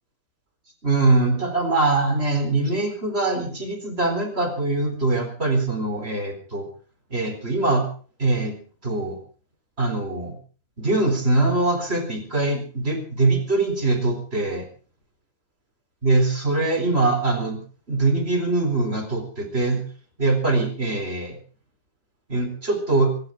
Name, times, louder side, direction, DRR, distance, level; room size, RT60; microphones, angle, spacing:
voice 1, 0.8-6.7 7.1-7.8 8.2-9.2 9.8-10.3 10.8-14.7 16.0-17.6 17.9-19.8 20.2-21.4 22.3-23.1, right 2 dB, 15° right, 3 dB, 4.2 m, -22 dB
25.0 x 11.0 x 5.2 m, 0.40 s
omnidirectional pair, 4.4 m